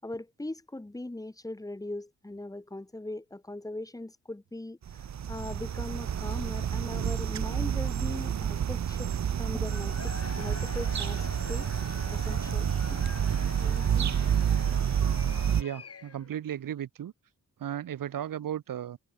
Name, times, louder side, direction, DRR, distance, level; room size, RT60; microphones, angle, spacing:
voice 1, 0.0-4.8 5.3-9.1 9.4-11.7 12.1-13.3 13.6-14.2, left 1 dB, 10° left, 6.1 m, -40 dB
sound 1, 4.9-15.6, right 8 dB, 55° right, 1.5 m, -29 dB
Cheering / Crowd, 9.6-16.3, left 6 dB, 45° left, 7.4 m, -45 dB
voice 2, 15.5-17.1 17.6-19.0, right 10 dB, 85° right, 1.6 m, -35 dB
wide cardioid pair, 180°, 33 cm